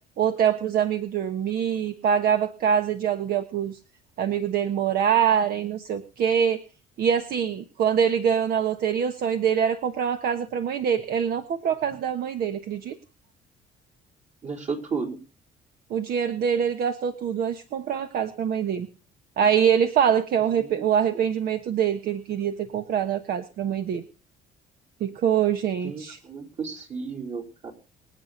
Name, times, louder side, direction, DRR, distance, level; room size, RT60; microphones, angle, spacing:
voice 1, 0.2-3.8 4.2-6.6 7.0-13.0 15.9-18.9 19.4-24.0 25.0-26.2, right 8 dB, 65° right, 9 dB, 1.2 m, -24 dB
voice 2, 14.4-15.2 20.6-20.9 25.8-27.7, right 5 dB, 45° right, 3 dB, 4.3 m, -33 dB
25.0 x 8.6 x 3.9 m, 0.35 s
cardioid pair, 110°, 17 cm